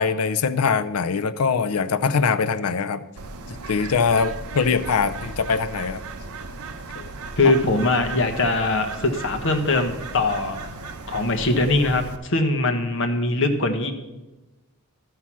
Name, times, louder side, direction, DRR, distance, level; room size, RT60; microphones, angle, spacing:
voice 1, 0.0-3.0 3.7-6.0 7.0-7.1 7.4-7.5, left 5 dB, 85° left, 13 dB, 0.5 m, -22 dB
Bird, 3.2-12.2, right 3 dB, 80° right, 0.8 m, -36 dB
voice 2, 7.4-10.6 11.1-13.9, left 2 dB, 60° left, 5 dB, 1.1 m, -22 dB
13.0 x 5.7 x 6.1 m, 1.1 s
head